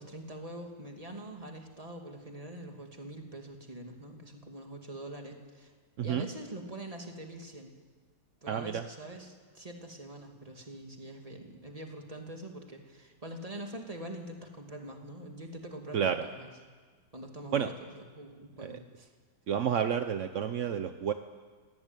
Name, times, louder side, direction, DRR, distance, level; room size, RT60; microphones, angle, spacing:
voice 1, 0.0-5.7 6.0-7.7 8.4-16.5 17.1-19.1, right 1 dB, 15° right, 3 dB, 2.6 m, -44 dB
voice 2, 8.5-8.8 15.9-16.3 17.5-17.7 18.6-18.8 19.5-21.1, right 8 dB, 55° right, 8 dB, 0.8 m, -30 dB
24.0 x 18.0 x 9.1 m, 1.5 s
omnidirectional pair, 2.2 m